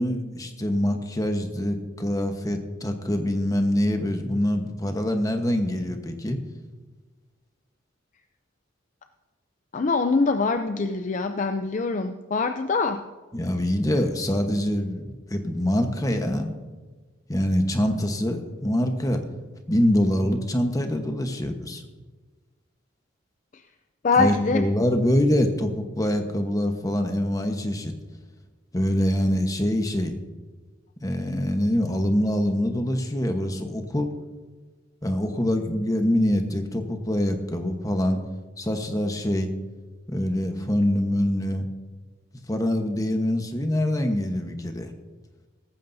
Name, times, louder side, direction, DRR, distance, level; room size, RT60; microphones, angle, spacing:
voice 1, 0.0-6.4 13.3-16.5 17.3-19.2 19.7-21.8 24.2-27.9 28.7-30.2 31.0-34.1 35.0-38.2 38.6-39.5 40.1-41.7 42.5-44.9, left 1 dB, 20° left, 5 dB, 1.1 m, -24 dB
voice 2, 9.7-13.0 23.5-23.6 24.0-24.7, left 4 dB, 40° left, 8 dB, 0.5 m, -24 dB
17.5 x 14.5 x 2.7 m, 1.3 s
head